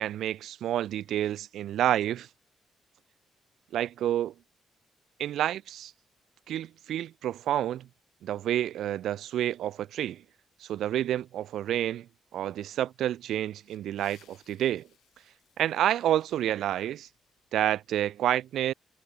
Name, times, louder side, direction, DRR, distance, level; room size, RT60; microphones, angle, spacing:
voice 1, 0.0-2.3 3.7-4.3 5.2-5.9 6.5-7.9 8.2-10.2 10.6-12.1 12.3-14.9 15.6-17.1 17.5-18.7, right 12 dB, 75° right, 0.4 m, -29 dB
sound 1, 13.6-17.8, left 12 dB, 90° left, 2.4 m, -65 dB
cardioid pair, 175°, 0 cm